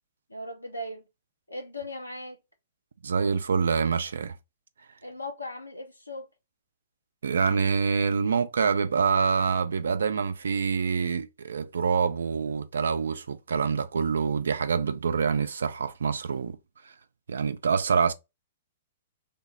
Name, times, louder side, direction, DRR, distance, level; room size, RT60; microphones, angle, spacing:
voice 1, 0.3-1.0 1.5-2.4 5.0-6.3, left 1 dB, 85° left, 0.8 m, -38 dB
voice 2, 3.0-4.4 7.2-16.6 16.8-16.9 17.3-18.1, right 5 dB, 65° right, 0.4 m, -26 dB
3.4 x 2.0 x 4.0 m
figure-of-eight pair, 110°, 0 cm